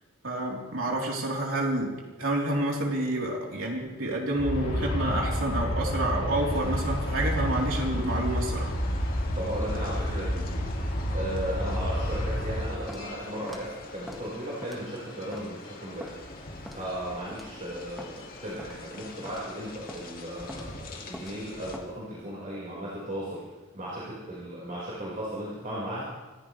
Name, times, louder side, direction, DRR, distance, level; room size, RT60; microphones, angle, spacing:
voice 1, 0.2-1.9 2.2-8.7, right 1 dB, 75° right, -2 dB, 3.7 m, -29 dB
Aircraft, 4.4-12.7, equal, 65° left, 4.5 m, -29 dB
sound 1, 6.5-21.8, left 2 dB, 45° left, 2.3 m, -45 dB
voice 2, 9.4-10.7 11.1-23.4 23.7-26.0, equal, 40° right, -8 dB, 5.1 m, -36 dB
Walk footsteps, 12.9-13.1 13.5-13.7 14.1-14.2 14.6-14.9 15.3-15.5 16.0-16.1 16.7-16.9 17.3-17.5 18.0-18.1 18.6-18.8 19.3-19.5 19.9-20.0 20.5-20.7 21.1-21.4 21.7-21.9, equal, ahead, 1.8 m, -42 dB
26.5 x 15.5 x 3.4 m, 1.3 s
head